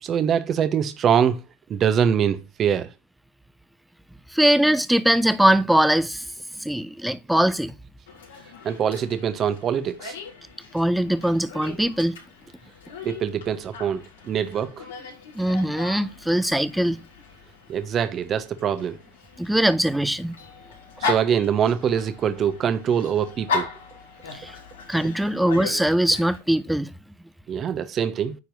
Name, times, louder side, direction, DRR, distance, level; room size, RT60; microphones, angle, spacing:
voice 1, 0.0-1.4 1.7-2.9 8.6-10.2 13.0-14.9 17.7-19.0 21.0-23.7 27.5-28.4, right 8 dB, 40° right, 1.1 m, -23 dB
voice 2, 4.3-6.2 6.6-7.7 10.7-12.2 15.4-17.0 19.4-20.3 24.3-24.5 24.9-26.9, right 1 dB, 5° right, 0.8 m, -21 dB
Dog, 8.1-26.4, left 5 dB, 80° left, 3.5 m, -37 dB
9.6 x 4.6 x 5.4 m
hypercardioid pair, 85°, 0 cm